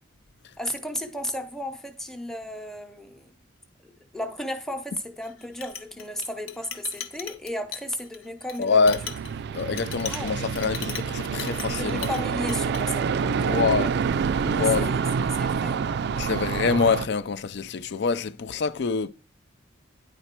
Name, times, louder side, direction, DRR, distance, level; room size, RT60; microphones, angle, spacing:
voice 1, 0.6-3.3 4.1-8.8 10.0-10.3 11.7-13.9 14.5-15.0 15.4-15.8, left 1 dB, ahead, 0.8 m, -34 dB
Chink clink, 5.2-12.2 12.5-12.8, left 7 dB, 85° left, 1.0 m, -38 dB
voice 2, 8.6-9.0 9.5-12.1 13.2-14.0 14.4-14.9 16.2-19.1, left 5 dB, 60° left, 0.4 m, -25 dB
sound 1, 8.9-17.1, right 6 dB, 55° right, 0.3 m, -27 dB
10.0 x 4.3 x 4.4 m
head